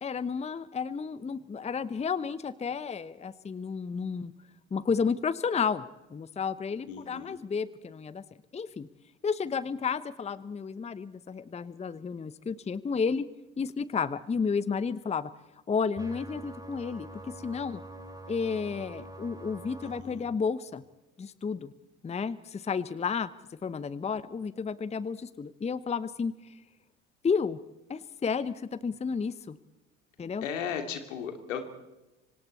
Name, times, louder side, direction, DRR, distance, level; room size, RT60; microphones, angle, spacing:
voice 1, 0.0-4.3 4.7-5.8 6.1-8.2 8.5-8.9 9.2-13.3 13.6-15.3 15.7-17.8 18.3-20.8 21.2-21.7 22.0-26.5 27.2-27.6 27.9-29.6 30.2-30.4, left 5 dB, 15° left, 17 dB, 0.8 m, -32 dB
voice 2, 6.9-7.4 19.8-20.2 30.4-31.7, left 7 dB, 70° left, 7 dB, 2.5 m, -36 dB
sound 1, 16.0-20.0, right 1 dB, 10° right, 5.0 m, -44 dB
26.5 x 25.5 x 4.3 m, 1.0 s
figure-of-eight pair, 60°, 39 cm